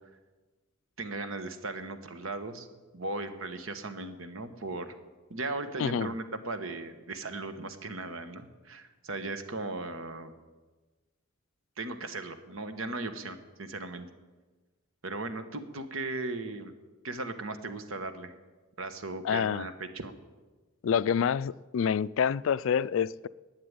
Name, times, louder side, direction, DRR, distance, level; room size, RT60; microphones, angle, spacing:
voice 1, 1.0-2.7 2.9-4.9 5.3-10.3 11.8-14.1 15.0-16.7 17.0-18.3 18.8-20.1, right 2 dB, 70° right, 1.2 m, -37 dB
voice 2, 5.8-6.1 19.2-19.7 20.8-23.3, left 7 dB, 65° left, 0.3 m, -27 dB
11.5 x 8.7 x 9.5 m
head